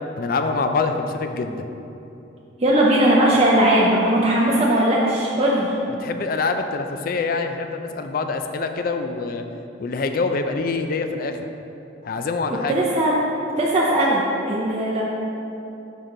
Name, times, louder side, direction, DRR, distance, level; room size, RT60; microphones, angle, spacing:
voice 1, 0.2-1.6 6.0-9.4 9.8-11.4 12.0-12.8, left 4 dB, 50° left, 6 dB, 0.4 m, -25 dB
voice 2, 2.6-5.8 12.7-13.1 13.6-15.0, right 1 dB, 30° right, -5 dB, 0.5 m, -19 dB
6.2 x 5.2 x 3.7 m, 2.9 s
head